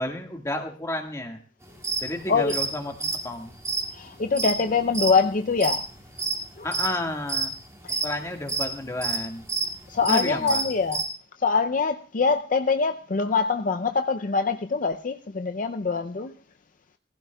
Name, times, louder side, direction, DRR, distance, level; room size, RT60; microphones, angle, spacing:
voice 1, 0.0-1.4 2.0-3.5 6.6-7.5 8.0-9.4 10.0-10.6, left 1 dB, 15° left, 2 dB, 1.7 m, -31 dB
sound 1, 1.8-2.0 2.5-2.7 2.9-5.1 5.5-6.4 6.7-6.9 7.3-8.1 8.5-8.7 9.0-9.7 10.0-11.0, right 4 dB, 15° right, 2.3 m, -27 dB
voice 2, 3.9-5.8 6.6-6.7 7.8-8.0 9.9-11.0 11.4-16.3, left 4 dB, 50° left, 7 dB, 0.5 m, -24 dB
21.0 x 15.5 x 2.3 m, 0.40 s
head